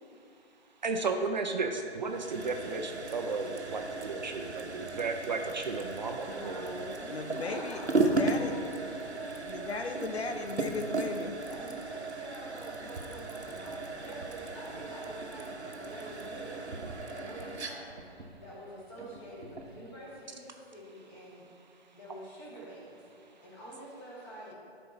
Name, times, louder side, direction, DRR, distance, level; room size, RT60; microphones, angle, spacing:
voice 1, 0.8-6.8, right 3 dB, 40° right, 4 dB, 0.6 m, -34 dB
sound 1, 2.1-19.8, right 3 dB, 80° right, 1.1 m, -36 dB
voice 2, 6.2-10.0 11.3-17.9 18.4-21.5 21.9-23.0 23.4-24.5, equal, 25° left, -6 dB, 2.2 m, -46 dB
voice 3, 7.1-8.5 9.5-11.4, left 4 dB, 70° left, 6 dB, 0.7 m, -36 dB
11.0 x 4.5 x 5.4 m, 2.6 s
figure-of-eight pair, 135°, 33 cm